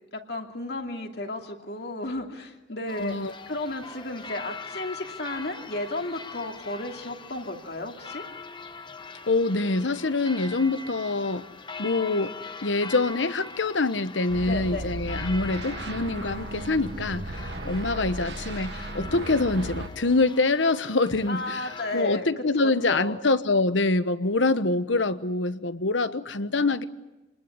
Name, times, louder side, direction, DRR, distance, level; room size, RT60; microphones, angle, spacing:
voice 1, 0.1-8.2 14.4-14.9 21.3-23.2, left 2 dB, 60° left, 3 dB, 2.6 m, -33 dB
voice 2, 2.9-3.3 9.3-11.4 11.8-12.3 12.6-21.7 21.9-26.8, left 3 dB, 85° left, 13 dB, 1.1 m, -25 dB
sound 1, 2.9-22.0, left 4 dB, 25° left, 0.9 m, -42 dB
sound 2, 14.3-19.9, right 1 dB, 65° right, 2.3 m, -35 dB
27.5 x 20.5 x 9.8 m, 1.0 s
head